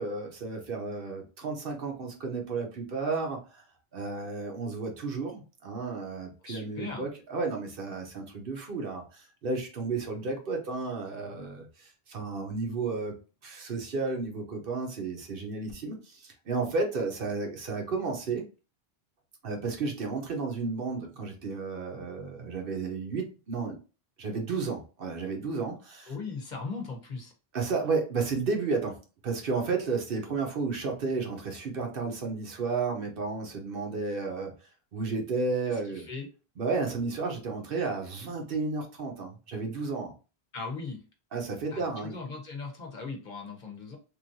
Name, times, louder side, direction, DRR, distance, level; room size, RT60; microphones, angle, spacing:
voice 1, 0.0-3.6 3.9-13.1 13.4-18.5 19.4-23.8 24.2-26.1 27.5-34.5 34.9-36.0 36.6-40.1 41.3-42.1, right 4 dB, 60° right, 2 dB, 0.9 m, -32 dB
voice 2, 6.4-7.1 26.1-27.3 35.7-36.3 40.5-41.0 41.7-44.0, left 4 dB, 50° left, 2 dB, 0.9 m, -38 dB
3.1 x 2.6 x 2.5 m, 0.34 s
omnidirectional pair, 1.1 m